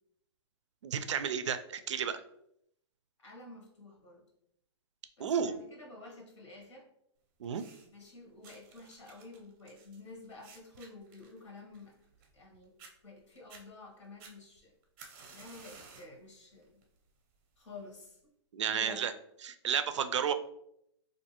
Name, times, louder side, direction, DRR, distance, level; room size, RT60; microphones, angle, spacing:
voice 1, 0.8-2.2 5.2-5.5 7.4-7.6 18.5-19.1 19.4-20.3, right 7 dB, 90° right, 10 dB, 0.4 m, -32 dB
voice 2, 3.2-4.2 5.2-6.9 7.9-11.9 12.3-14.8 15.3-16.8 17.6-18.2 18.7-19.1, left 3 dB, 90° left, 0 dB, 1.2 m, -51 dB
sound 1, 7.4-8.0 8.4-12.5 12.8-12.9 13.4-13.6 14.2-16.2 16.6-17.0 17.8-17.9, right 4 dB, 30° right, 0.5 m, -55 dB
3.2 x 2.6 x 2.8 m, 0.75 s
hypercardioid pair, 155°, 15 cm